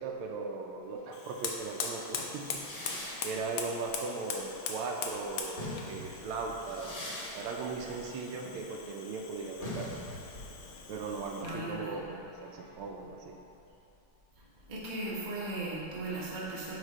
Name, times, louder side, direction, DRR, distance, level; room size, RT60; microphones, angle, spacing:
voice 1, 0.0-7.1 7.3-10.2 10.9-13.4, right 4 dB, 80° right, 1 dB, 1.4 m, -38 dB
Fire, 1.1-11.7, left 5 dB, 75° left, 1.4 m, -42 dB
sound 1, 2.4-4.9 5.3-12.9, left 1 dB, 35° left, 0.5 m, -44 dB
voice 2, 11.4-12.0 14.7-16.8, right 2 dB, 35° right, -7 dB, 0.6 m, -37 dB
5.0 x 3.7 x 5.4 m, 2.9 s
omnidirectional pair, 2.4 m